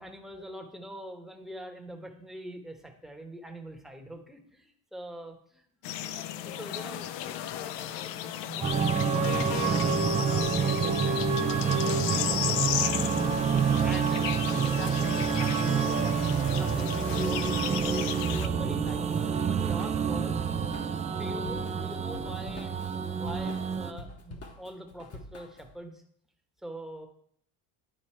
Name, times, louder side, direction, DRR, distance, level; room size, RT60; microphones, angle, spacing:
voice 1, 0.0-5.6 6.2-7.4 7.7-7.9 8.2-13.0 13.6-18.0 18.3-19.0 19.5-20.4 20.8-26.0 26.6-27.1, right 1 dB, ahead, 2 dB, 1.1 m, -44 dB
sound 1, 5.8-18.5, left 11 dB, 65° left, 0.7 m, -34 dB
sound 2, 8.6-23.9, right 6 dB, 15° right, 0.4 m, -28 dB
Drum kit / Drum, 18.4-25.7, left 2 dB, 30° left, 1.1 m, -46 dB
10.0 x 4.0 x 4.4 m, 0.66 s
supercardioid pair, 110°, 46 cm